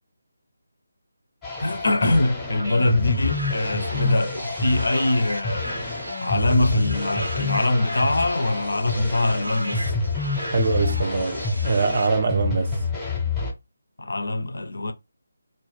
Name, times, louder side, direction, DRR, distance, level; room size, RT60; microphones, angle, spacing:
sound 1, 1.4-13.5, left 3 dB, 5° left, 0.6 m, -28 dB
voice 1, 1.6-5.8 6.2-9.9 14.0-14.9, left 2 dB, 60° left, 0.4 m, -23 dB
sound 2, 2.5-12.1, equal, 80° right, 0.6 m, -35 dB
voice 2, 10.5-11.4 11.6-12.7, right 4 dB, 40° right, 0.4 m, -22 dB
2.3 x 2.1 x 3.1 m
figure-of-eight pair, 155°, 0 cm